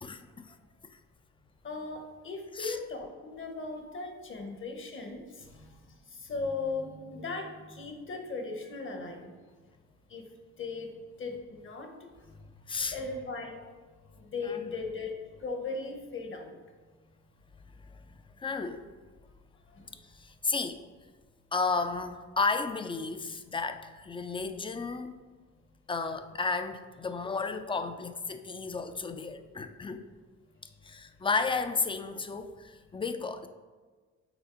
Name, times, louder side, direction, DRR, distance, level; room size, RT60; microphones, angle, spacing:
voice 1, 0.0-0.5 0.9-1.0 2.6-2.8 12.7-13.0 14.5-14.7 17.9-18.8 20.0-20.8 21.5-25.2 25.9-30.1 30.8-33.5, left 4 dB, 15° left, 9 dB, 0.3 m, -33 dB
voice 2, 1.6-5.8 6.1-9.3 10.1-10.2 10.6-10.9 11.2-11.9 12.9-13.7 14.1-16.5 19.7-19.9, left 3 dB, 40° left, 4 dB, 1.0 m, -38 dB
6.1 x 4.1 x 3.8 m, 1.4 s
cardioid pair, 90°, 30 cm